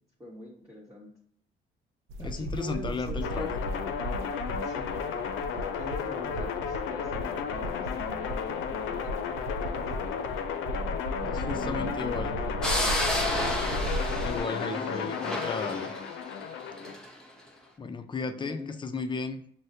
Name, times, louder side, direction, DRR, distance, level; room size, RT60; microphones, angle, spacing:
voice 1, 0.2-1.1 2.2-3.5 4.6-9.9 10.2-10.4 11.2-13.0 13.7-13.9 14.6-15.3 18.4-18.7, left 1 dB, 15° right, -6 dB, 1.1 m, -43 dB
sound 1, 2.1-14.4, right 1 dB, 85° right, 0.4 m, -36 dB
voice 2, 2.2-3.5 11.3-12.3 14.2-15.9 17.8-19.4, left 4 dB, 25° left, 9 dB, 0.4 m, -34 dB
sound 2, 3.2-16.9, left 7 dB, 85° left, 0.5 m, -33 dB
sound 3, 12.6-17.1, left 1 dB, 5° left, 0.8 m, -32 dB
6.2 x 2.1 x 2.7 m, 0.66 s
cardioid pair, 90°, 20 cm